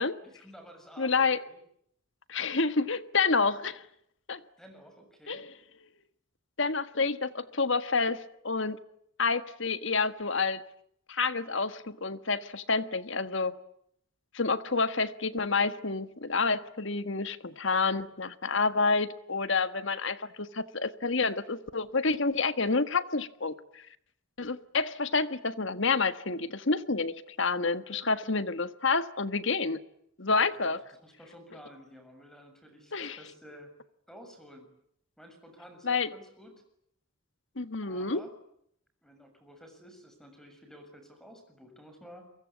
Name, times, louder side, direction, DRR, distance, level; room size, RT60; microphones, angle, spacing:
voice 1, 0.2-1.6 4.6-5.5 30.4-33.7 34.1-34.7 35.2-36.5 37.8-38.3 39.0-42.3, equal, ahead, 5 dB, 7.0 m, -52 dB
voice 2, 1.0-1.4 2.3-3.8 4.3-4.4 5.3-5.4 6.6-8.8 9.2-10.6 11.1-13.5 14.3-23.8 24.4-29.8 30.2-30.8 32.9-33.2 35.8-36.1 37.6-38.2, left 4 dB, 60° left, 12 dB, 1.6 m, -29 dB
29.5 x 23.5 x 8.5 m, 0.72 s
head